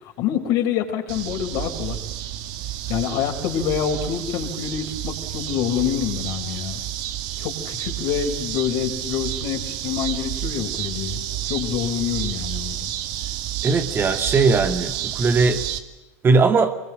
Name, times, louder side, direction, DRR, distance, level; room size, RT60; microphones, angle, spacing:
voice 1, 0.0-2.0 2.9-6.8 7.4-11.2 11.5-12.9, left 9 dB, 55° left, 5.0 m, -26 dB
sound 1, 1.1-15.8, right 12 dB, 55° right, 2.2 m, -30 dB
voice 2, 13.6-15.6 16.2-16.8, right 4 dB, 25° right, 2.3 m, -19 dB
25.5 x 22.0 x 7.7 m
hypercardioid pair, 80°, 8 cm